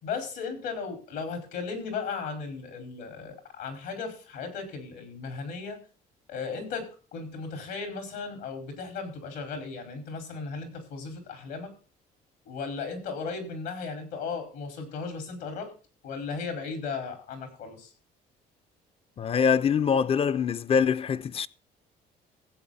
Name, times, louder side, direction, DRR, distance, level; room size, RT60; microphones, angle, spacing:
voice 1, 0.0-5.8 6.3-6.8 7.1-11.7 12.5-15.7 16.0-17.9, left 5 dB, 80° left, 5.0 m, -36 dB
voice 2, 19.2-21.5, left 6 dB, 35° left, 0.5 m, -24 dB
15.5 x 8.3 x 4.2 m
cardioid pair, 110°, 17 cm